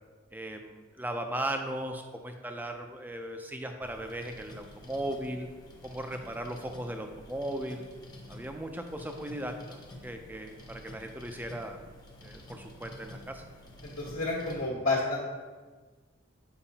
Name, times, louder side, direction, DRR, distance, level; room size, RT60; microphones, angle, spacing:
voice 1, 0.3-5.5 5.8-7.8 8.3-11.8 12.2-13.4, right 1 dB, 10° right, 5 dB, 0.4 m, -37 dB
sound 1, 3.8-14.6, left 1 dB, 20° left, 0.7 m, -49 dB
voice 2, 13.8-15.2, left 2 dB, 75° left, -5 dB, 1.3 m, -30 dB
7.0 x 4.8 x 2.8 m, 1.4 s
head